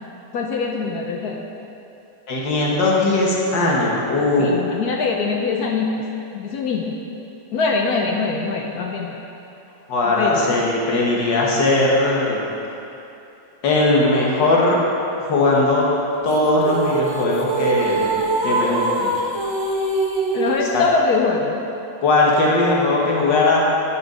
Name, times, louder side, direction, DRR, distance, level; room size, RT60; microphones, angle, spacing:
voice 1, 0.3-1.4 4.4-6.0 6.3-7.0 7.5-9.3 10.2-10.5 20.3-21.6, left 4 dB, 65° left, 1 dB, 1.2 m, -23 dB
voice 2, 2.3-4.5 9.9-12.4 13.6-14.8 15.2-15.9 16.2-18.1 18.4-19.2 20.7-20.8 22.0-23.6, left 2 dB, 85° left, -3 dB, 2.1 m, -19 dB
sound 1, 16.3-20.8, right 2 dB, 30° right, 0.5 m, -23 dB
10.5 x 8.1 x 5.0 m, 2.8 s
omnidirectional pair, 1.9 m